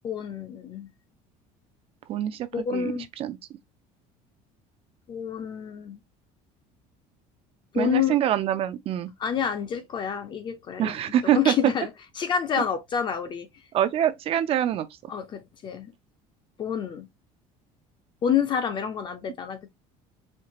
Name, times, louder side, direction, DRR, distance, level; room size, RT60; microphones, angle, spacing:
voice 1, 0.0-0.9 2.5-3.1 5.1-6.0 7.7-8.2 9.2-10.9 11.2-11.9 12.2-13.5 15.1-15.9 16.6-17.1 18.2-19.7, left 8 dB, 35° left, 0.6 m, -28 dB
voice 2, 2.1-3.4 7.8-9.1 10.8-11.5 13.7-14.9, right 11 dB, 40° right, 0.5 m, -25 dB
4.4 x 2.8 x 2.8 m
cardioid pair, 160°, 15 cm